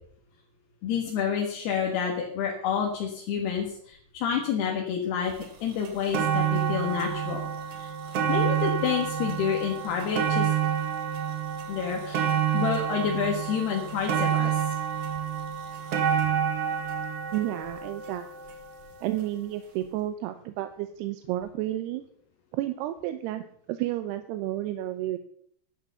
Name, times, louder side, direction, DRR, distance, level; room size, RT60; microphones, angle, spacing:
voice 1, 0.8-5.3 5.6-7.4 7.7-7.9 8.3-10.5 11.7-12.3 12.5-14.6, left 7 dB, 80° left, 0 dB, 3.7 m, -29 dB
sound 1, 5.4-5.5 5.8-19.0 19.8-19.9, right 8 dB, 55° right, 1.8 m, -28 dB
voice 2, 17.3-18.2 19.0-22.0 22.5-23.4 23.7-25.2, right 14 dB, 85° right, 10 dB, 2.8 m, -31 dB
11.5 x 11.0 x 7.0 m, 0.64 s
omnidirectional pair, 4.7 m